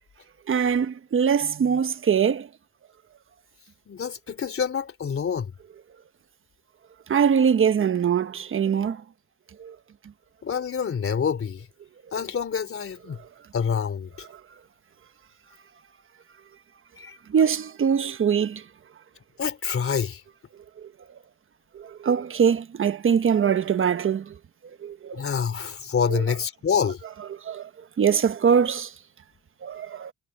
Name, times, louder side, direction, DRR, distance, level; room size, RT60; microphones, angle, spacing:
voice 1, 0.5-2.5 7.1-9.0 9.6-9.7 13.2-13.3 14.3-14.4 17.3-18.6 20.8-20.9 21.7-24.4 24.8-25.2 26.1-26.2 27.3-27.7 28.0-28.9 29.6-30.1, right 7 dB, 45° right, 1.3 m, -23 dB
voice 2, 3.9-5.5 10.4-11.7 12.1-13.2 13.5-14.3 17.0-17.2 19.4-20.2 25.1-27.0, left 7 dB, 45° left, 3.3 m, -27 dB
cardioid pair, 90°, 30 cm